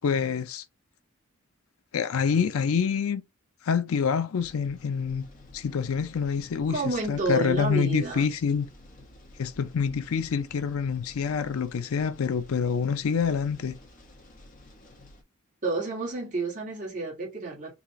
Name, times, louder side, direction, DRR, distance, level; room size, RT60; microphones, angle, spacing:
voice 1, 0.0-0.6 1.9-3.2 3.6-5.3 5.5-6.8 7.1-8.7 9.4-13.8, left 6 dB, 80° left, 0.5 m, -26 dB
sound 1, 4.4-15.2, left 1 dB, 40° left, 1.1 m, -51 dB
voice 2, 6.7-8.3 15.6-17.8, right 3 dB, 40° right, 1.6 m, -30 dB
4.1 x 2.3 x 3.0 m
head